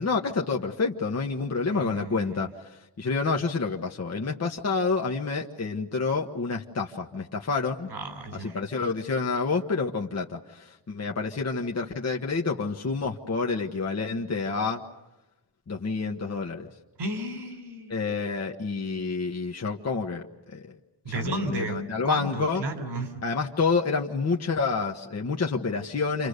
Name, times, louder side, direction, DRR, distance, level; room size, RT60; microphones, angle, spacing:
voice 1, 0.0-7.9 8.4-14.8 15.7-16.7 17.9-20.3 20.5-20.6 21.1-22.6 23.2-26.3, left 4 dB, 40° left, 0 dB, 1.5 m, -28 dB
voice 2, 1.7-2.4 7.9-8.6 17.0-18.0 21.0-23.1, right 2 dB, 75° right, 7 dB, 3.7 m, -33 dB
29.0 x 25.5 x 6.7 m, 1.0 s
cardioid pair, 85°, 42 cm